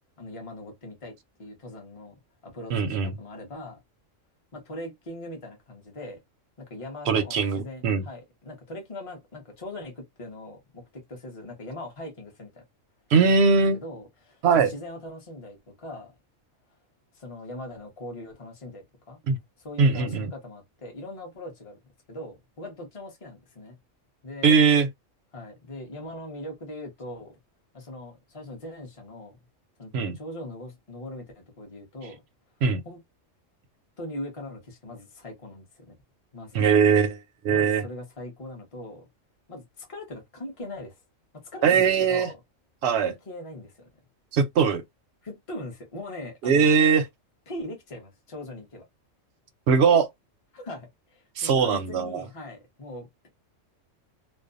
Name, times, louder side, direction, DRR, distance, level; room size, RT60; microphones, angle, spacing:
voice 1, 0.2-2.1 2.4-3.8 4.5-6.2 6.6-12.6 13.4-13.5 13.7-16.1 17.1-19.2 19.6-21.8 22.1-23.7 24.2-24.6 25.3-27.3 27.7-29.4 29.8-32.2 32.8-33.0 34.0-36.0 36.3-36.6 37.5-39.0 39.5-40.9 41.3-42.4 43.0-43.9 45.2-46.7 47.5-48.8 50.5-53.3, left 1 dB, 30° left, 0.9 m, -40 dB
voice 2, 2.7-3.1 7.1-8.0 13.1-13.8 14.4-14.7 19.3-19.4 19.8-20.3 24.4-24.9 29.9-30.2 32.6-32.8 36.5-37.8 41.6-42.3 42.8-43.1 44.3-44.8 46.4-47.1 49.7-50.1 51.4-52.2, right 5 dB, 65° right, 0.7 m, -21 dB
2.6 x 2.2 x 2.4 m
omnidirectional pair, 1.3 m